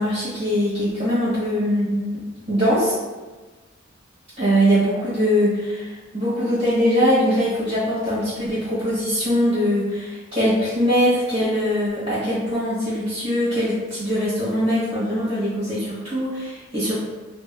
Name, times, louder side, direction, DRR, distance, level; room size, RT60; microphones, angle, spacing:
voice 1, 0.0-2.9 4.4-17.0, equal, 30° right, -12 dB, 1.1 m, -22 dB
2.8 x 2.2 x 2.6 m, 1.3 s
head